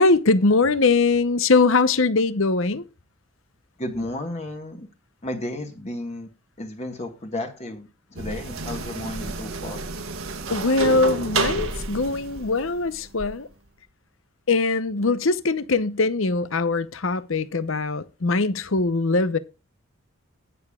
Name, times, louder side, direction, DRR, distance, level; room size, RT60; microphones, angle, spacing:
voice 1, 0.0-2.8 10.5-13.5 14.5-19.4, left 3 dB, 70° left, 0.9 m, -21 dB
voice 2, 3.8-4.9 5.2-6.3 6.6-9.8, left 1 dB, 30° left, 1.5 m, -33 dB
sound 1, 8.2-13.3, right 3 dB, 85° right, 1.7 m, -30 dB
20.0 x 7.0 x 2.4 m
head